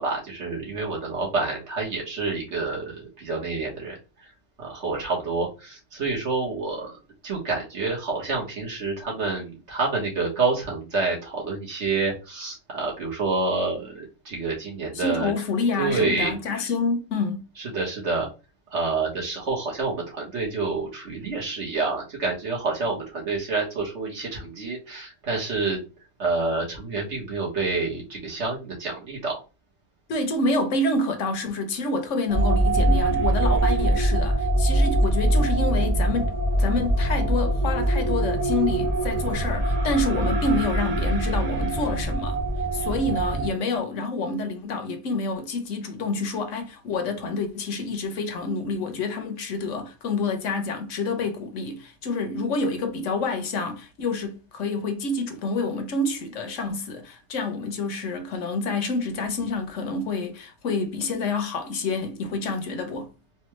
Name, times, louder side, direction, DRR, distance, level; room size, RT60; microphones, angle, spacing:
voice 1, 0.0-3.9 4.6-6.9 7.2-15.3 15.8-16.4 17.6-18.3 18.7-25.8 26.2-29.4, right 3 dB, 65° right, 1.8 m, -28 dB
voice 2, 14.9-17.4 30.1-42.4 42.7-63.1, left 3 dB, 75° left, 1.1 m, -28 dB
sound 1, 32.3-43.5, right 1 dB, 40° right, 0.6 m, -23 dB
4.3 x 2.3 x 3.1 m
omnidirectional pair, 1.3 m